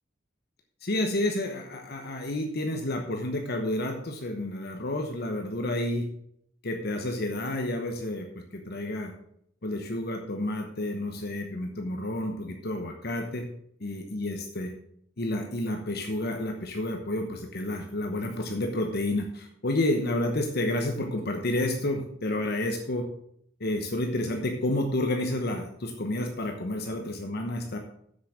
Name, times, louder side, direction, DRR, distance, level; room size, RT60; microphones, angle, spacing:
voice 1, 0.8-6.1 6.6-8.3 8.5-9.1 9.6-13.4 13.8-14.7 15.2-23.1 23.6-27.8, left 1 dB, 55° left, 3 dB, 1.0 m, -30 dB
7.6 x 7.1 x 6.1 m, 0.70 s
head